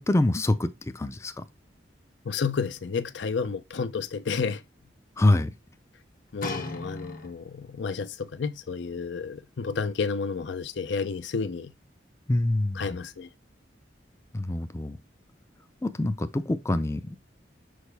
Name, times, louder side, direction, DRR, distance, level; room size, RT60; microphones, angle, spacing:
voice 1, 0.0-1.4 5.2-5.5 12.3-12.8 14.3-15.0 15.8-17.2, left 1 dB, 15° left, 0.4 m, -25 dB
voice 2, 2.2-4.6 6.3-11.7 12.7-13.3, left 5 dB, 75° left, 0.5 m, -31 dB
sound 1, 6.4-7.7 8.4-8.5, left 2 dB, 50° left, 1.0 m, -36 dB
6.4 x 4.9 x 3.3 m
head